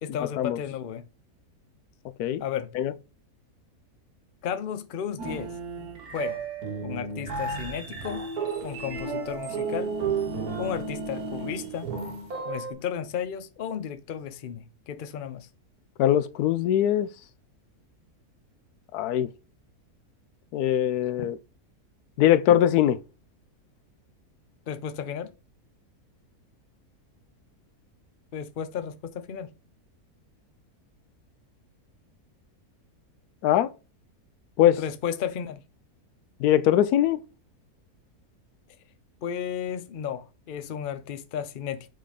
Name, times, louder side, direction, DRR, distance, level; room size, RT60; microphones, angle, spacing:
voice 1, 0.0-1.0 2.4-2.7 4.4-5.6 6.1-6.4 6.8-8.3 8.6-9.9 10.6-11.9 12.4-15.5 24.7-25.3 28.3-29.5 34.8-35.6 39.2-41.9, left 8 dB, 55° left, 0.5 m, -33 dB
sound 1, 5.2-12.7, right 4 dB, 70° right, 2.2 m, -33 dB
voice 2, 16.0-17.1 18.9-19.3 20.5-21.4 22.2-23.0 33.4-33.7 34.6-34.8 36.4-37.2, left 11 dB, 80° left, 1.1 m, -21 dB
7.5 x 3.7 x 5.0 m
omnidirectional pair, 1.6 m